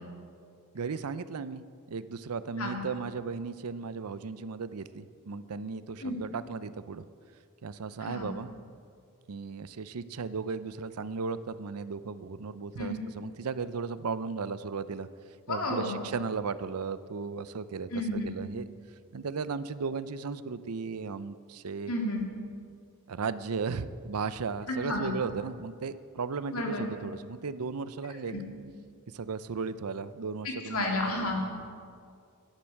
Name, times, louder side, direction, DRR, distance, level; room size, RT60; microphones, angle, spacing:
voice 1, 0.7-7.0 7.6-8.5 9.3-15.1 15.5-18.6 19.1-21.9 23.1-28.3 29.1-30.8, right 5 dB, 85° right, 14 dB, 0.6 m, -35 dB
voice 2, 15.5-16.1 17.9-18.3 21.9-22.2 24.7-25.2 26.5-26.9 28.3-28.4 30.4-31.4, left 1 dB, 70° left, 0 dB, 2.6 m, -31 dB
13.5 x 10.5 x 6.5 m, 2.3 s
head